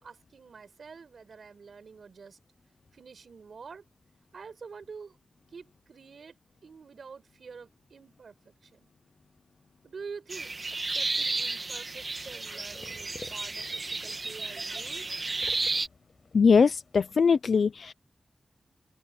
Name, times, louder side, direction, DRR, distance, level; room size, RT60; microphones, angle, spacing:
voice 1, 0.0-2.4 2.9-3.8 4.3-5.2 5.5-6.4 6.6-8.9 9.8-10.5 10.9-15.2, right 5 dB, 85° right, 4.6 m, -47 dB
sound 1, 10.3-15.9, right 3 dB, 40° right, 1.3 m, -33 dB
sound 2, 11.9-17.1, left 4 dB, 50° left, 5.9 m, -52 dB
voice 2, 16.3-17.9, left 5 dB, 80° left, 0.5 m, -21 dB
open air
wide cardioid pair, 115°, 0 cm